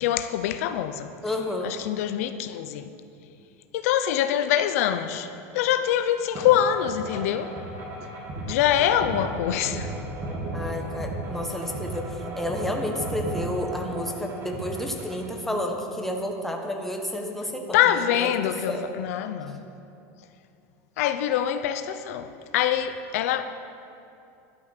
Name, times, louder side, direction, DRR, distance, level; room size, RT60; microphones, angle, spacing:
voice 1, 0.0-1.1 1.6-2.9 3.7-7.5 8.5-9.9 17.7-19.6 21.0-23.4, left 10 dB, 75° left, 0.7 m, -24 dB
voice 2, 1.2-1.8 10.5-12.0 12.4-17.8 18.1-18.3 18.7-18.9, left 1 dB, 5° left, 1.4 m, -30 dB
sound 1, 6.3-15.3, right 2 dB, 35° right, 2.9 m, -34 dB
12.0 x 10.5 x 6.7 m
supercardioid pair, 125°, 8 cm